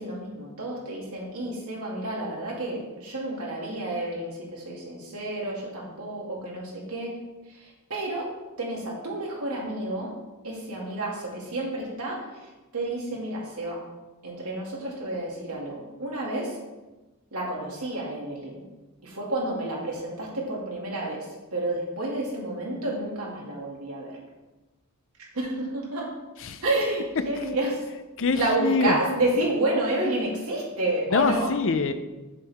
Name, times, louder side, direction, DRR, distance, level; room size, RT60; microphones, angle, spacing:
voice 1, 0.0-7.1 7.6-10.2 10.4-12.2 12.7-13.8 14.2-16.6 17.3-18.6 19.0-24.2 25.3-26.1 26.6-27.8 28.3-31.5, right 1 dB, 80° right, -3 dB, 2.5 m, -30 dB
voice 2, 28.2-29.0 31.1-31.9, left 4 dB, 65° left, 10 dB, 0.6 m, -24 dB
8.2 x 7.5 x 3.6 m, 1.1 s
head